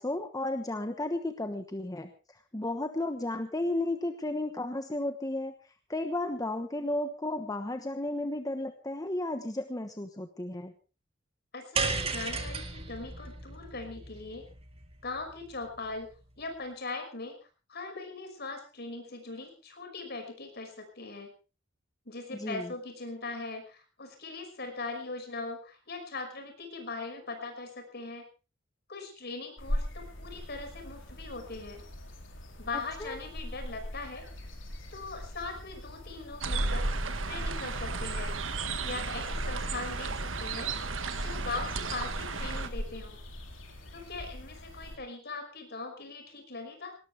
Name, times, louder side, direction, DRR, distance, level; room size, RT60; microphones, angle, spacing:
voice 1, 0.0-2.1 2.5-5.5 5.9-10.7 22.3-22.7 33.0-33.2, left 1 dB, 20° left, 7 dB, 1.1 m, -33 dB
voice 2, 11.5-14.5 15.0-16.1 16.4-17.4 17.7-21.3 22.1-28.2 28.9-31.8 32.6-34.3 34.9-36.9 37.2-38.3 38.8-40.7 41.2-43.2 43.9-47.0, left 3 dB, 55° left, 6 dB, 5.7 m, -40 dB
sound 1, 11.8-16.1, right 4 dB, 30° right, 2.2 m, -35 dB
sound 2, 29.6-45.0, equal, 70° left, 4.1 m, -41 dB
sound 3, 36.4-42.7, right 3 dB, 80° right, 1.6 m, -33 dB
19.0 x 19.0 x 3.4 m, 0.34 s
head